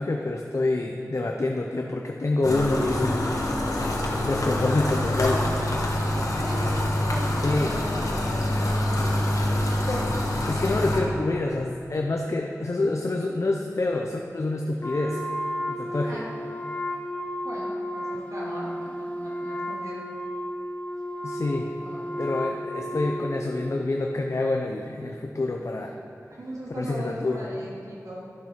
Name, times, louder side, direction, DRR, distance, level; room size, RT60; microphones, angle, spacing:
voice 1, 0.0-3.3 4.1-5.5 7.4-7.7 10.5-15.2 15.7-16.1 21.2-21.7 22.2-25.9 26.8-27.5, left 2 dB, 55° left, 1 dB, 0.7 m, -27 dB
sound 1, 2.4-11.0, left 1 dB, 70° left, 1.6 m, -26 dB
voice 2, 6.1-9.3 16.0-16.3 17.4-20.0 21.8-22.0 22.5-22.6 26.3-28.3, equal, 70° right, -6 dB, 2.9 m, -38 dB
Wind instrument woodwind instrument, 14.8-23.6, equal, 25° left, 0.9 m, -33 dB
12.0 x 7.4 x 5.7 m, 2.5 s
wide cardioid pair, 80°, 6 cm